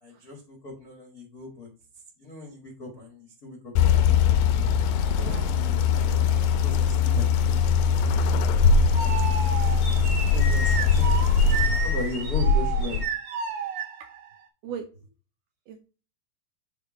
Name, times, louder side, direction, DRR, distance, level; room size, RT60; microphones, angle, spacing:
voice 1, 0.0-1.7 2.2-4.1 5.1-5.6 5.9-9.4 10.3-13.1, left 2 dB, 55° left, -1 dB, 1.0 m, -38 dB
sound 1, 3.8-13.0, left 6 dB, 80° left, 2.2 m, -22 dB
voice 2, 5.1-5.6 14.6-14.9 15.7-15.8, right 7 dB, 80° right, 5 dB, 1.9 m, -38 dB
sound 2, 8.0-14.3, right 6 dB, 40° right, 1.8 m, -31 dB
6.9 x 4.2 x 5.1 m, 0.35 s
omnidirectional pair, 4.4 m